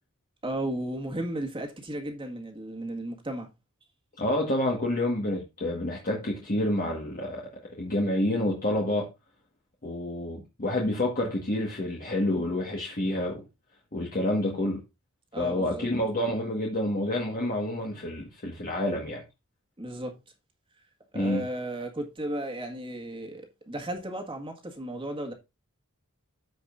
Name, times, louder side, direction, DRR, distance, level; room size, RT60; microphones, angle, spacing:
voice 1, 0.4-3.5 15.3-15.9 19.8-20.1 21.1-25.3, right 1 dB, 25° right, 1.8 m, -34 dB
voice 2, 4.2-7.5 7.8-9.1 9.8-13.4 13.9-14.8 15.4-19.2 21.1-21.4, left 1 dB, 40° left, 1.6 m, -28 dB
14.0 x 5.2 x 2.6 m
head